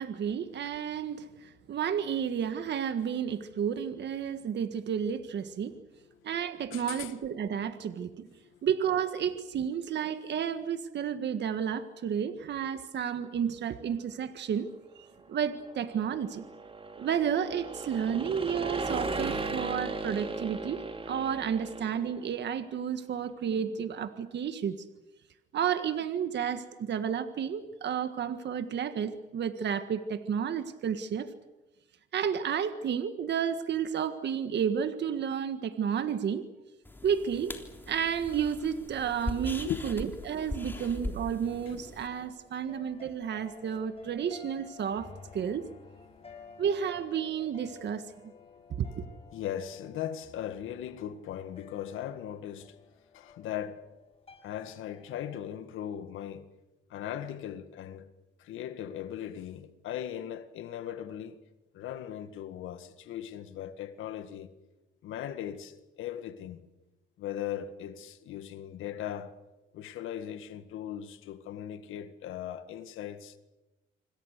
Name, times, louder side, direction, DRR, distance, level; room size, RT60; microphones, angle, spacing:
voice 1, 0.0-5.7 6.2-8.3 8.6-14.7 15.0-16.4 17.0-20.8 21.1-24.7 25.5-31.3 32.1-36.4 37.0-37.5 37.9-45.7 46.6-48.1 48.7-48.9, right 8 dB, 60° right, 1.7 m, -31 dB
voice 2, 6.7-7.1 8.4-8.6 39.6-40.1 40.3-40.4 40.7-40.9 41.7-41.8 42.1-42.2 42.6-42.7 43.8-43.9 46.2-46.6 48.5-48.8 49.3-52.8 53.1-53.8 54.4-56.5 56.9-58.1 58.4-61.4 61.7-64.5 65.0-66.7 67.2-69.3 69.7-73.4, left 10 dB, 85° left, 1.8 m, -39 dB
sound 1, 15.4-22.3, right 3 dB, 25° right, 2.7 m, -37 dB
sound 2, 36.9-42.1, left 1 dB, 10° left, 3.5 m, -40 dB
sound 3, 42.1-55.4, left 5 dB, 30° left, 5.8 m, -53 dB
27.0 x 25.5 x 6.7 m
cardioid pair, 90°, 20 cm